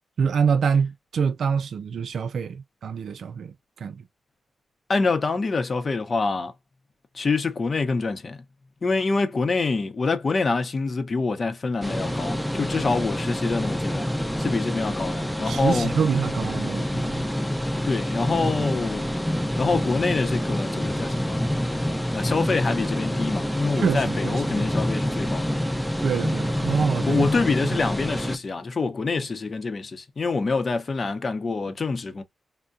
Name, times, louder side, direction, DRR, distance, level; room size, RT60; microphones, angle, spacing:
voice 1, 0.2-3.5 3.8-4.0 15.4-17.2 23.8-24.6 26.0-27.3, right 6 dB, 80° right, 0.3 m, -25 dB
voice 2, 4.9-6.5 7.1-8.4 8.8-14.1 14.4-15.9 17.8-19.1 19.6-21.4 22.1-25.6 27.1-32.2, left 4 dB, 50° left, 0.7 m, -26 dB
sound 1, 11.8-28.4, equal, 5° left, 0.4 m, -27 dB
3.4 x 2.2 x 2.5 m
cardioid pair, 60°, 0 cm